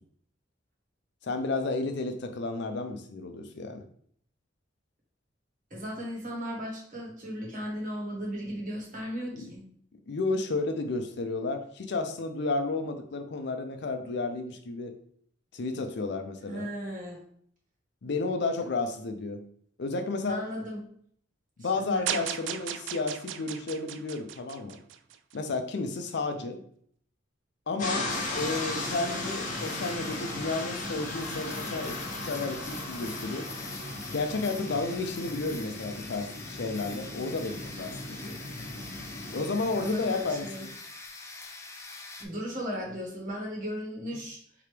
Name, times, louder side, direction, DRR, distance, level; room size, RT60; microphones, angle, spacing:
voice 1, 1.2-3.8 9.3-9.5 10.1-14.9 15.5-16.7 18.0-19.4 19.8-20.4 21.6-24.8 25.3-26.6 27.7-28.1 28.4-33.4 34.1-38.4 39.3-40.8, left 3 dB, 65° left, 6 dB, 0.5 m, -32 dB
voice 2, 5.7-9.6 16.5-17.2 20.3-20.8 21.6-22.1 39.7-40.7 42.2-44.4, equal, 45° right, -2 dB, 1.5 m, -36 dB
sound 1, 22.1-25.3, right 10 dB, 75° right, 0.3 m, -36 dB
sound 2, 27.8-40.6, left 2 dB, 45° left, 1.1 m, -37 dB
sound 3, 28.1-42.3, left 3 dB, 15° left, 0.5 m, -44 dB
4.8 x 2.9 x 3.3 m, 0.62 s
head